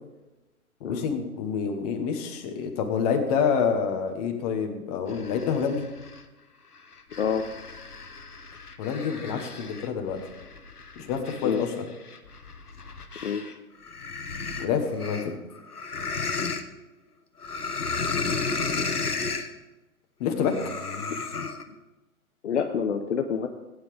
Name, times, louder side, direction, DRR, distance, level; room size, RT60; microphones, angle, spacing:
voice 1, 0.8-5.9 8.8-10.2 11.1-11.9 14.6-15.4 20.2-20.5, left 6 dB, 25° left, 4 dB, 1.4 m, -27 dB
sound 1, 5.1-6.2 6.8-13.5 13.8-16.6 17.4-19.5 20.4-21.6, left 4 dB, 85° left, 1.2 m, -33 dB
voice 2, 22.4-23.5, left 7 dB, 50° left, 5 dB, 0.9 m, -27 dB
16.0 x 9.3 x 3.5 m, 1.1 s
figure-of-eight pair, 130°, 44 cm